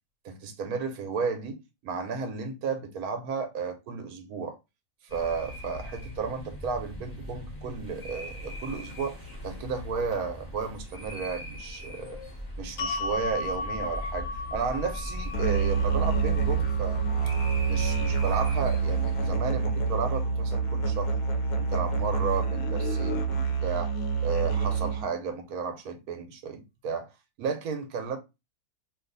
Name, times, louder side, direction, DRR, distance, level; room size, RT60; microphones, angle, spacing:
voice 1, 0.2-4.6 5.1-12.2 12.6-17.0 17.7-21.1 21.6-24.0 24.2-27.1 27.4-28.2, right 5 dB, 80° right, 1.2 m, -33 dB
sound 1, 5.1-19.3, equal, 30° left, 1.2 m, -38 dB
sound 2, 12.8-19.0, left 3 dB, 60° left, 0.8 m, -37 dB
Musical instrument, 15.3-25.1, right 5 dB, 80° left, 1.1 m, -27 dB
2.7 x 2.5 x 3.9 m
omnidirectional pair, 1.6 m